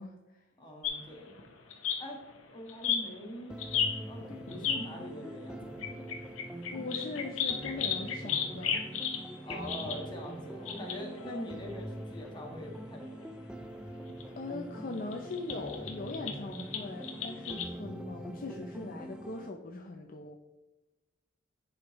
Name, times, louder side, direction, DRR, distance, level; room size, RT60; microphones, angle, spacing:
voice 1, 0.0-0.4 6.7-8.8 14.4-20.3, left 3 dB, 45° left, 2 dB, 0.6 m, -40 dB
voice 2, 0.6-1.3 2.0-2.2 2.5-3.6 4.1-6.1 9.4-13.3, equal, 20° left, -1 dB, 1.5 m, -43 dB
sound 1, 0.8-4.9 5.6-11.8 12.1-12.2 12.7-12.8 14.1-14.2 14.9-17.6, left 7 dB, 70° left, 0.9 m, -35 dB
sound 2, 3.5-19.5, right 1 dB, 5° right, 0.4 m, -43 dB
10.5 x 5.0 x 3.1 m, 1.0 s
head